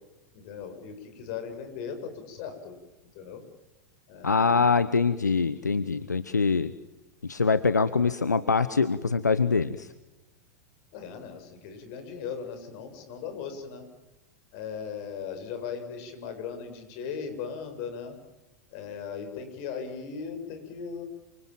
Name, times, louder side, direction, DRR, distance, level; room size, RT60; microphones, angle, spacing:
voice 1, 0.3-2.8 3.1-3.4 4.1-4.8 10.9-13.8 14.5-18.1 18.7-21.0, left 6 dB, 50° left, 7 dB, 7.6 m, -38 dB
voice 2, 4.2-6.7 7.2-9.9, left 4 dB, 90° left, 14 dB, 1.1 m, -24 dB
29.5 x 26.5 x 7.5 m, 1.0 s
hypercardioid pair, 95°, 9 cm